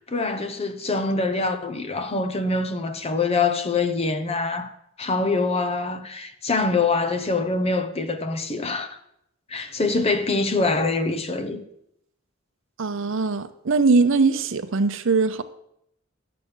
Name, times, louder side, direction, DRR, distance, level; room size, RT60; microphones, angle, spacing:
voice 1, 0.1-4.7 5.0-8.9 9.5-11.6, left 3 dB, 30° left, 0.8 m, -24 dB
voice 2, 12.8-15.4, right 4 dB, 65° right, 0.7 m, -21 dB
10.5 x 7.0 x 6.2 m
head